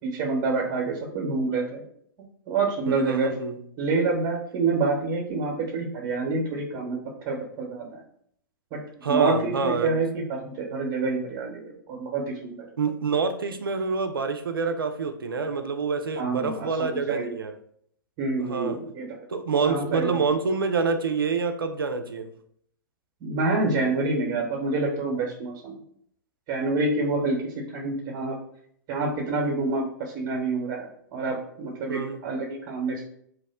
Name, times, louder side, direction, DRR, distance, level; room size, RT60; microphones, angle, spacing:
voice 1, 0.0-1.8 2.5-3.3 3.8-7.0 7.2-7.9 8.7-8.8 9.1-10.2 10.6-12.6 16.2-17.3 18.2-19.2 19.7-20.1 23.2-25.8 26.5-27.4 27.7-28.4 28.9-33.0, right 3 dB, 40° right, -1 dB, 1.0 m, -27 dB
voice 2, 2.9-3.6 9.0-10.0 12.8-17.5 18.4-18.8 19.3-22.3 31.9-32.2, right 4 dB, 90° right, 7 dB, 0.4 m, -26 dB
2.9 x 2.1 x 3.5 m, 0.66 s
hypercardioid pair, 115°, 11 cm